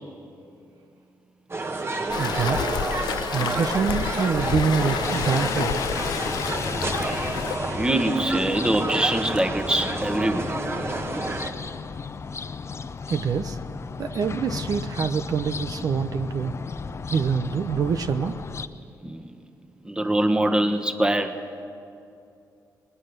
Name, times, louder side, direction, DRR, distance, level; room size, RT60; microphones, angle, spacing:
sound 1, 1.5-11.5, right 2 dB, 35° right, 1.7 m, -30 dB
Waves surf, 2.1-7.6, left 9 dB, 80° left, 0.5 m, -30 dB
voice 1, 2.2-2.7 3.3-5.8 13.1-13.6 14.0-16.5 17.1-18.4, right 6 dB, 60° right, 9 dB, 0.7 m, -25 dB
sound 2, 5.0-18.7, left 5 dB, 40° left, 0.7 m, -34 dB
voice 2, 7.8-10.6 19.0-19.3 19.8-21.4, right 1 dB, 10° right, 7 dB, 1.4 m, -24 dB
21.0 x 19.0 x 6.7 m, 2.5 s
cardioid pair, 75°, 7 cm